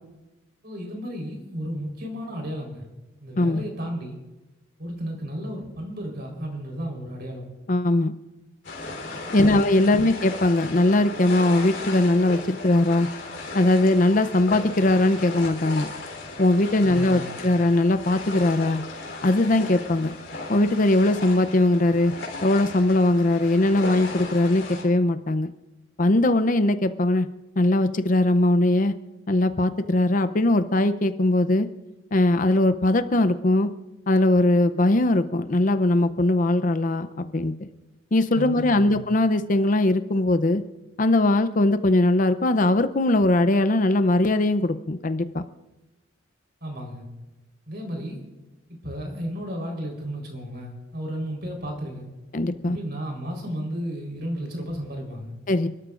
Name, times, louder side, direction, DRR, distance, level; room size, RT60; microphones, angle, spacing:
voice 1, 0.6-2.8 3.2-4.1 4.8-7.5 9.3-10.0 16.8-17.5 38.3-39.0 46.6-47.1 47.7-48.2 48.7-52.1 52.7-55.3, equal, 55° right, 1 dB, 4.1 m, -33 dB
voice 2, 7.7-8.1 9.3-13.1 13.5-15.9 16.4-18.8 19.2-20.1 20.5-22.1 22.4-25.5 26.0-27.3 27.6-28.9 29.3-31.7 32.1-33.7 34.1-37.7 38.1-40.6 41.0-45.5 52.3-52.8 55.5-55.7, left 2 dB, 45° left, 11 dB, 0.6 m, -20 dB
sound 1, 8.6-24.8, left 3 dB, 70° left, 3.7 m, -36 dB
29.5 x 13.0 x 2.5 m, 1.1 s
head